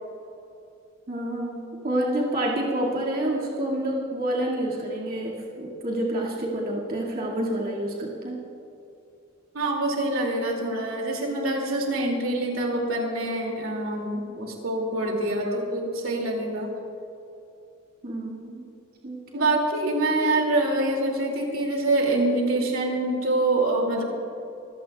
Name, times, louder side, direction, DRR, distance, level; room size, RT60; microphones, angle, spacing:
voice 1, 1.1-8.4 15.4-15.6 18.0-18.6 19.0-19.5, right 1 dB, 45° right, -4 dB, 2.2 m, -28 dB
voice 2, 9.5-16.7 19.3-24.0, right 2 dB, 85° right, 0 dB, 2.6 m, -25 dB
25.5 x 16.5 x 2.4 m, 2.7 s
head